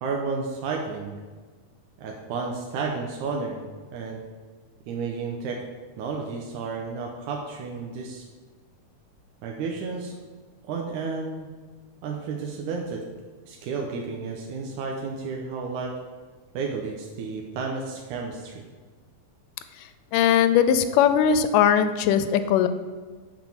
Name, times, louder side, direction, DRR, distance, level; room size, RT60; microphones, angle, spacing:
voice 1, 0.0-1.2 2.0-3.6 3.9-4.2 4.9-5.6 6.0-8.2 9.4-10.2 10.6-11.5 12.0-13.0 13.5-15.9 16.5-18.6, right 4 dB, 75° right, 0 dB, 2.2 m, -32 dB
voice 2, 20.1-22.7, left 8 dB, 85° left, 11 dB, 2.1 m, -19 dB
6.9 x 6.0 x 7.1 m, 1.4 s
omnidirectional pair, 3.8 m